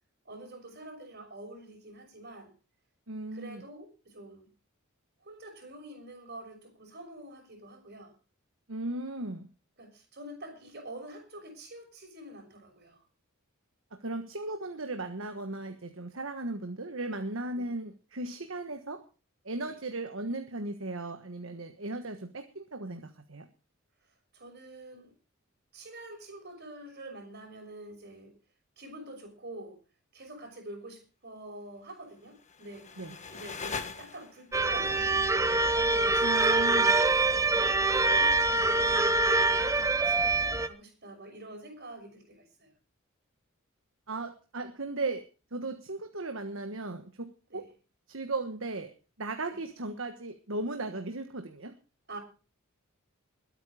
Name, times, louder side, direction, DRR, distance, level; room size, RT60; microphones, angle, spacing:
voice 1, 0.2-2.5 3.3-4.5 5.2-8.1 9.8-13.0 24.3-25.1 25.7-28.4 28.8-29.8 30.1-35.2 35.7-37.1 37.5-37.7 38.0-42.7 47.5-47.6 49.5-49.6 52.1-52.2, right 1 dB, 50° right, 3 dB, 6.2 m, -46 dB
voice 2, 3.1-3.6 8.7-9.5 13.9-19.0 19.4-23.5 33.0-33.1 36.2-36.9 44.1-45.2 45.5-47.7 48.1-48.9 49.2-51.7, right 2 dB, 65° right, 7 dB, 1.4 m, -36 dB
sound 1, 32.2-34.6, left 5 dB, 35° left, 1.6 m, -41 dB
sound 2, 34.5-40.7, right 3 dB, 15° right, 0.9 m, -25 dB
21.5 x 9.1 x 5.0 m, 0.35 s
head